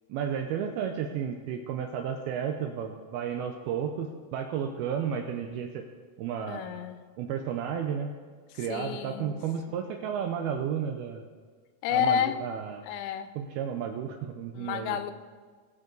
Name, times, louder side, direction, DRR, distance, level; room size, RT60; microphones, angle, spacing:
voice 1, 0.1-5.9 6.2-6.8 7.2-8.1 8.5-11.3 11.9-12.8 13.4-15.0, right 8 dB, 80° right, 4 dB, 2.3 m, -32 dB
voice 2, 6.5-7.0 8.7-9.3 11.8-12.4 12.8-13.3 14.6-15.1, left 9 dB, 90° left, 11 dB, 3.0 m, -29 dB
20.5 x 7.3 x 3.9 m, 1.5 s
omnidirectional pair, 5.1 m